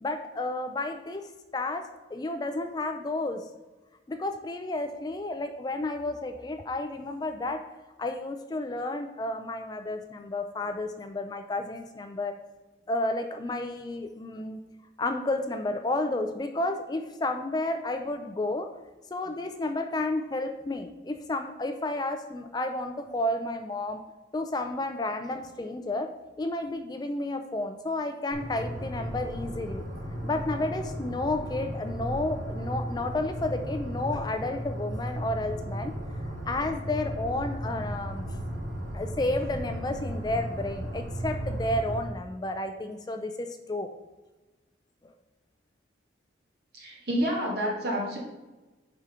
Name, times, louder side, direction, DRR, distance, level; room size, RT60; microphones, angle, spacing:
voice 1, 0.0-3.5 4.1-7.6 8.0-12.4 12.9-14.6 15.0-18.8 19.1-24.0 24.3-29.8 30.2-35.9 36.5-38.3 38.9-43.9 45.0-45.1, left 2 dB, 20° left, 7 dB, 0.3 m, -31 dB
sound 1, 28.3-42.0, equal, 85° right, 1.8 m, -35 dB
voice 2, 46.7-48.2, equal, 55° right, -2 dB, 1.6 m, -29 dB
5.0 x 4.8 x 5.6 m, 1.1 s
head